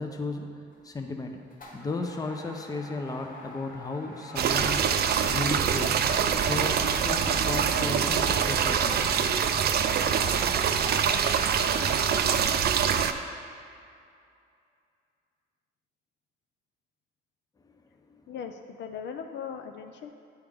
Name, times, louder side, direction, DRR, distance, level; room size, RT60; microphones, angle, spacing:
voice 1, 0.0-1.4 1.7-5.0 5.2-6.0 6.4-9.0 17.6-17.7, left 3 dB, 20° left, 4 dB, 0.6 m, -35 dB
sound 1, 0.7-1.0 1.5-12.3, left 1 dB, 45° left, 1.4 m, -45 dB
sound 2, 4.4-13.1, right 7 dB, 55° right, 0.4 m, -25 dB
voice 2, 18.3-20.1, left 7 dB, 65° left, 5 dB, 0.4 m, -38 dB
9.3 x 3.5 x 3.4 m, 2.4 s
cardioid pair, 90°, 20 cm